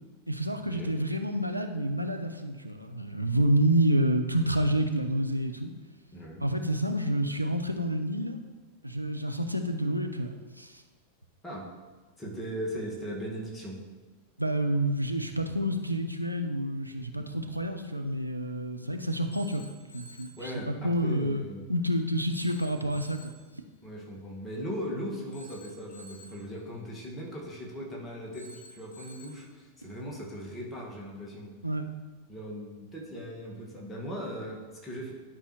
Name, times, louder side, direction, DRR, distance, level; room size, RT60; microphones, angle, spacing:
voice 1, 0.3-5.7 6.4-8.4 8.8-10.8 14.4-19.6 19.9-23.3 31.6-31.8, right 1 dB, 90° right, 6 dB, 0.5 m, -29 dB
voice 2, 6.1-6.4 11.4-11.6 12.2-13.8 20.4-21.6 23.8-31.5 32.3-35.1, equal, 15° left, -3 dB, 1.8 m, -38 dB
Telephone, 19.3-20.5 22.3-23.5 25.3-26.5 28.3-29.5, equal, 70° left, 1.1 m, -51 dB
11.0 x 5.5 x 3.1 m, 1.3 s
figure-of-eight pair, 90°, 0 cm